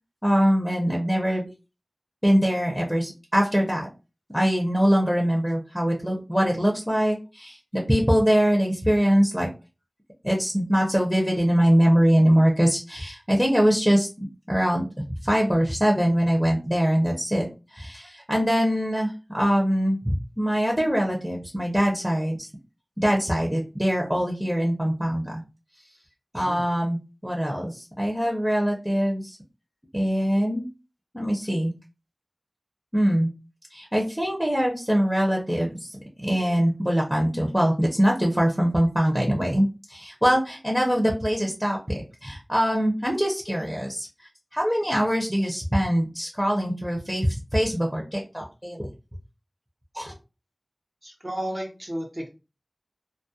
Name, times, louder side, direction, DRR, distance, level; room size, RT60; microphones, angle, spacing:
voice 1, 0.2-1.5 2.2-3.9 4.3-9.5 10.2-17.5 17.7-22.5 23.0-25.4 26.3-27.0 27.2-29.4 29.9-30.6 31.1-31.7 32.9-33.3 33.7-41.8 42.2-48.9 49.9-50.1, equal, 5° right, -1 dB, 0.6 m, -23 dB
voice 2, 51.0-52.3, equal, 55° right, -1 dB, 0.7 m, -33 dB
2.3 x 2.1 x 2.7 m, 0.30 s
wide cardioid pair, 40°, 0 cm